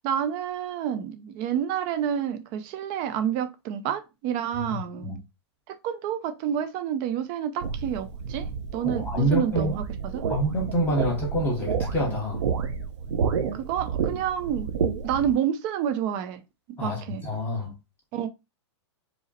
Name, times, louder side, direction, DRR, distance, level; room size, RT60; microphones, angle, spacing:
voice 1, 0.0-5.2 5.7-10.2 13.5-14.7 15.0-16.4 16.8-17.2 18.1-18.3, right 9 dB, 20° right, 0.4 m, -29 dB
voice 2, 4.7-5.2 9.0-9.7 10.3-12.4 16.8-17.7, equal, 10° left, 0.9 m, -27 dB
sound 1, 7.6-15.3, right 6 dB, 80° right, 0.7 m, -30 dB
4.9 x 2.0 x 4.0 m
hypercardioid pair, 170°, 15 cm